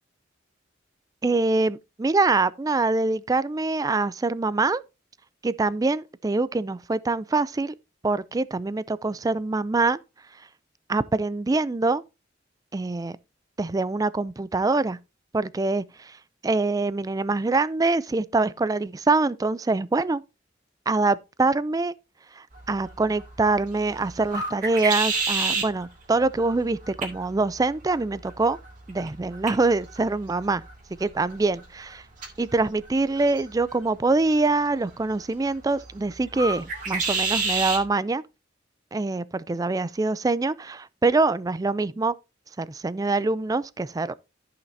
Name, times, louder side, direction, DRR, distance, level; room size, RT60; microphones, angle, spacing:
voice 1, 1.2-4.8 5.4-7.7 8.0-10.0 10.9-12.0 12.7-13.2 13.6-15.0 15.3-16.2 16.4-20.2 20.9-21.9 22.4-28.6 28.9-30.6 31.0-32.0 32.4-38.2 38.9-42.1 42.6-44.1, right 3 dB, 20° right, 0.3 m, -24 dB
sound 1, 22.5-37.9, right 3 dB, 45° right, 2.6 m, -33 dB
13.5 x 5.7 x 2.7 m
head